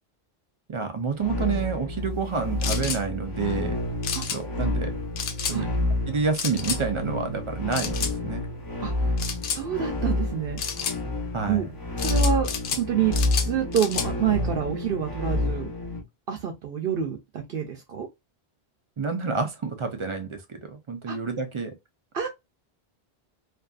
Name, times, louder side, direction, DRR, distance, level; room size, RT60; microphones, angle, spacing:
voice 1, 0.7-3.7 4.3-5.0 5.5-5.6 6.1-8.5 11.3-11.6 19.0-21.7, right 5 dB, 55° right, 0.3 m, -29 dB
sound 1, 1.2-16.0, left 1 dB, 25° left, 0.7 m, -29 dB
sound 2, 2.6-3.0 4.0-4.4 5.2-5.6 6.3-6.8 7.7-8.1 9.2-9.6 10.6-11.0 12.0-12.8 13.1-14.1, left 7 dB, 75° left, 0.8 m, -30 dB
voice 2, 8.8-9.2 9.5-10.6 11.5-11.7 12.0-13.1 13.4-15.7 16.3-18.1 21.1-21.2 22.1-22.3, right 8 dB, 70° right, 0.7 m, -27 dB
2.6 x 2.4 x 2.2 m
omnidirectional pair, 1.1 m